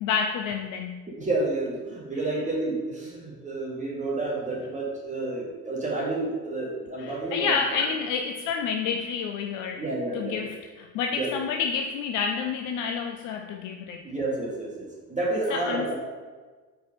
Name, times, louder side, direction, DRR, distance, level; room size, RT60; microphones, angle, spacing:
voice 1, 0.0-1.0 7.0-9.8 10.1-14.0 15.5-16.0, left 6 dB, 40° left, 5 dB, 0.4 m, -29 dB
voice 2, 1.1-7.8 9.8-10.5 11.1-11.3 14.0-16.0, right 2 dB, 15° right, -4 dB, 1.9 m, -30 dB
4.6 x 4.5 x 5.1 m, 1.4 s
figure-of-eight pair, 60°, 49 cm